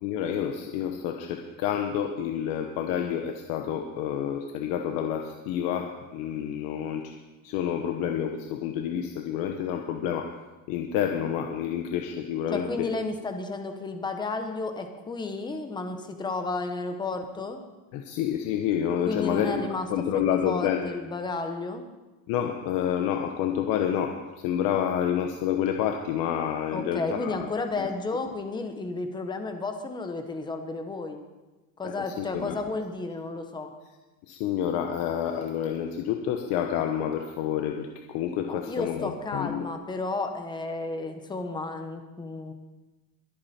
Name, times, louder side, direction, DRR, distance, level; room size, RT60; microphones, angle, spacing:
voice 1, 0.0-7.1 7.4-10.3 10.7-12.6 17.9-19.6 19.9-20.9 22.3-24.1 24.4-27.4 31.8-32.6 34.3-39.7, left 9 dB, 60° left, 4 dB, 1.1 m, -28 dB
voice 2, 12.5-17.6 19.1-21.8 26.7-31.2 31.8-33.7 38.4-42.5, left 3 dB, 10° left, 6 dB, 1.0 m, -32 dB
23.0 x 8.6 x 4.3 m, 1.1 s
cardioid pair, 170°, 39 cm